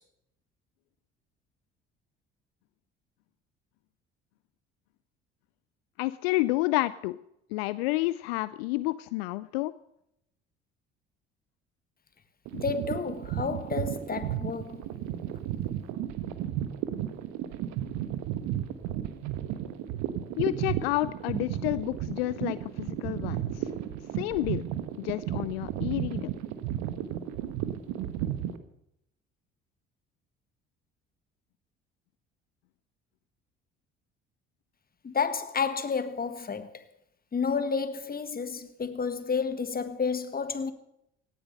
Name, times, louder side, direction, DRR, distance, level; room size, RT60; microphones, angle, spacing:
voice 1, 6.0-7.2 7.5-9.7 20.4-23.7 24.1-24.6 25.0-26.3, left 19 dB, 70° left, 0.5 m, -30 dB
voice 2, 12.5-14.9 35.0-36.9 37.3-40.7, left 5 dB, 30° left, 1.6 m, -31 dB
sound 1, 12.5-28.6, right 11 dB, 65° right, 1.3 m, -33 dB
17.5 x 10.0 x 6.7 m
figure-of-eight pair, 55°, 31 cm